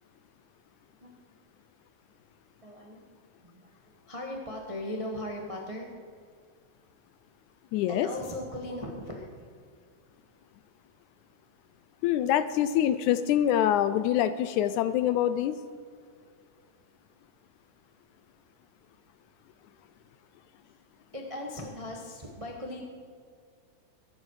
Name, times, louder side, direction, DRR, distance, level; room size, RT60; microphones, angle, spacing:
voice 1, 2.6-3.0 3.4-5.9 7.9-9.3 20.6-20.7 21.1-22.8, left 1 dB, 45° right, 0 dB, 0.4 m, -38 dB
voice 2, 7.7-8.1 12.0-15.6, left 11 dB, 80° left, 12 dB, 1.8 m, -25 dB
22.5 x 11.0 x 4.9 m, 2.1 s
omnidirectional pair, 3.8 m